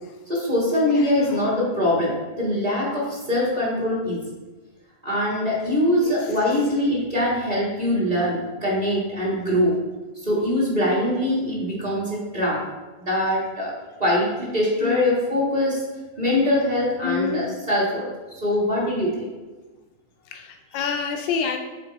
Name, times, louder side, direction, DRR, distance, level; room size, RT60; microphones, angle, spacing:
voice 1, 0.3-2.1 2.4-4.2 5.0-9.7 10.2-12.6 13.0-13.7 14.0-15.8 16.2-18.1 18.4-19.3, left 1 dB, 25° right, -5 dB, 1.6 m, -23 dB
voice 2, 0.9-1.5 6.0-6.4 14.8-15.2 17.0-17.6 20.3-21.6, left 6 dB, 90° left, 5 dB, 1.3 m, -28 dB
8.1 x 3.3 x 4.0 m, 1.2 s
omnidirectional pair, 1.9 m